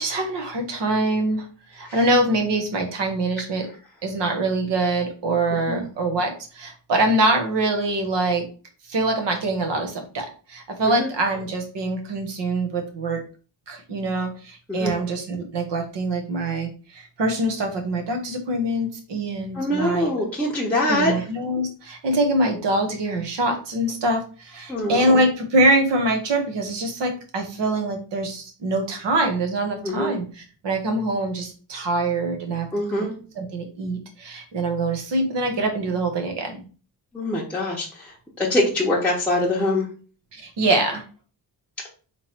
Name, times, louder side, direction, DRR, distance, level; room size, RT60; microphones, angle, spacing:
voice 1, 0.0-1.4 1.7-3.7 4.0-8.5 8.9-13.2 13.7-20.3 20.9-32.7 33.4-36.6 40.3-41.0, right 2 dB, 70° right, 4 dB, 1.3 m, -24 dB
voice 2, 19.5-21.1 24.7-25.2 29.8-30.1 32.7-33.1 37.1-38.1 38.4-39.9, left 1 dB, 5° left, -5 dB, 0.8 m, -23 dB
3.6 x 3.1 x 4.4 m, 0.37 s
wide cardioid pair, 175°, 44 cm